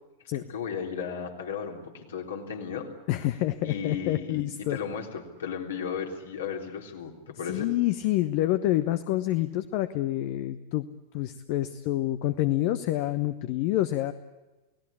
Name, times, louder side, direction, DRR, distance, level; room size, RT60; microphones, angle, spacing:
voice 1, 0.3-2.9 3.6-7.7, left 6 dB, 65° left, 2 dB, 3.8 m, -35 dB
voice 2, 3.1-4.8 7.5-10.9 11.1-14.1, left 15 dB, 45° left, 11 dB, 1.0 m, -27 dB
30.0 x 18.0 x 8.7 m, 1.1 s
figure-of-eight pair, 90°, 0 cm